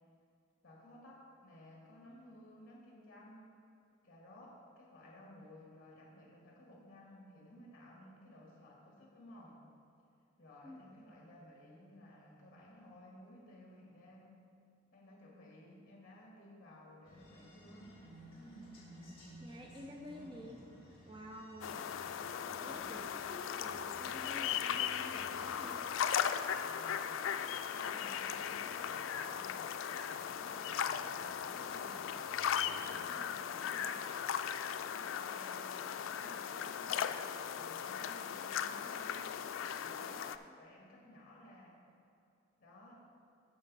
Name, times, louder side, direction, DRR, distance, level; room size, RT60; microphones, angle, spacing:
voice 1, 0.6-3.5 4.0-9.6 10.4-14.4 14.9-17.9 26.6-27.1 27.7-32.1 32.6-34.1 34.7-39.3 39.8-41.8 42.6-43.0, left 1 dB, 45° left, -3 dB, 1.6 m, -56 dB
sound 1, 17.0-33.6, equal, 30° left, 2.4 m, -58 dB
voice 2, 19.4-20.6 21.1-21.9 22.4-25.8 32.9-33.3, equal, 25° right, 1 dB, 0.6 m, -50 dB
sound 2, 21.6-40.4, left 8 dB, 80° left, 0.4 m, -38 dB
10.5 x 7.0 x 4.1 m, 2.7 s
head